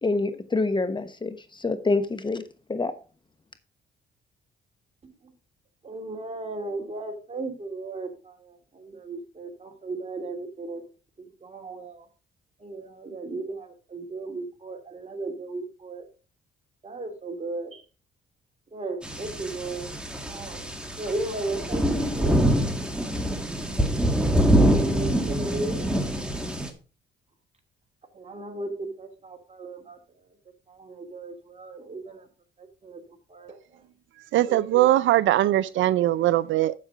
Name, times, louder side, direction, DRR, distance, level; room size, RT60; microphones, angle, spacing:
voice 1, 0.0-2.4 2.7-2.9, left 3 dB, 25° left, 1.1 m, -26 dB
voice 2, 5.8-10.8 11.2-12.1 12.6-16.1 16.8-17.8 18.7-19.9 20.3-22.4 24.4-25.9 28.1-30.0 30.7-32.2 32.8-33.0 33.3-33.6 34.5-34.8, right 2 dB, 35° right, 2.6 m, -36 dB
sound 1, 19.0-26.7, right 1 dB, 5° right, 2.0 m, -25 dB
voice 3, 34.3-36.7, right 14 dB, 75° right, 0.5 m, -21 dB
7.5 x 7.5 x 4.9 m
cardioid pair, 90°, 20 cm